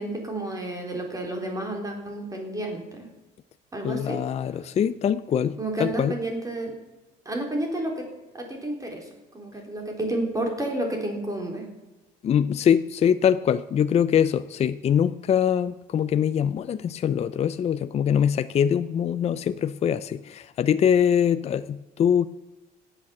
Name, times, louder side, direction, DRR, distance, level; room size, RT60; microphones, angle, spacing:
voice 1, 0.0-3.1 3.7-4.2 5.6-6.8 7.3-8.1 8.3-11.7, right 1 dB, 20° right, 2 dB, 4.0 m, -31 dB
voice 2, 3.8-6.1 12.2-22.3, left 8 dB, 40° left, 12 dB, 0.5 m, -23 dB
17.0 x 9.0 x 7.2 m, 1.1 s
cardioid pair, 110°, 17 cm